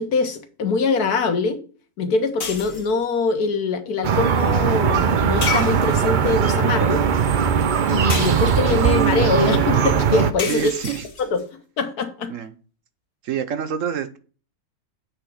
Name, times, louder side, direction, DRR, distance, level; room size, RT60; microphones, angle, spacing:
voice 1, 0.0-1.6 2.0-7.0 7.9-10.7 11.2-11.4 11.8-12.3, left 4 dB, 75° left, 7 dB, 1.6 m, -23 dB
sound 1, 2.4-3.0 5.4-6.3 8.1-8.9 10.4-11.4, left 6 dB, 40° left, 0.9 m, -31 dB
sound 2, 4.0-10.3, right 7 dB, 90° right, 0.4 m, -19 dB
voice 2, 10.5-11.0 12.3-12.5 13.2-14.2, right 8 dB, 60° right, 10 dB, 1.1 m, -27 dB
8.0 x 3.6 x 6.4 m, 0.39 s
omnidirectional pair, 1.7 m